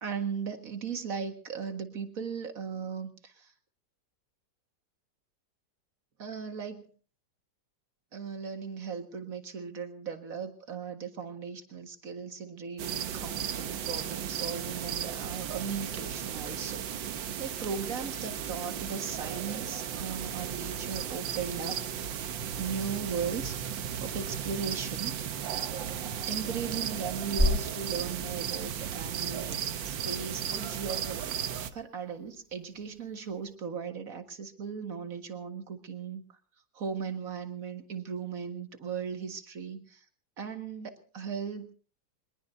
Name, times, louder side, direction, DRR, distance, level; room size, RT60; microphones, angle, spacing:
voice 1, 0.0-3.5 6.2-6.9 8.1-16.9 17.2-21.8 22.5-23.5 24.0-25.1 26.3-31.3 31.7-36.2 36.7-40.0 40.4-41.7, right 6 dB, 50° right, 7 dB, 2.1 m, -37 dB
sound 1, 12.8-31.7, right 9 dB, 80° right, 1.8 m, -35 dB
sound 2, 15.3-33.6, left 1 dB, 5° left, 4.3 m, -40 dB
23.0 x 21.5 x 2.7 m, 0.38 s
omnidirectional pair, 2.0 m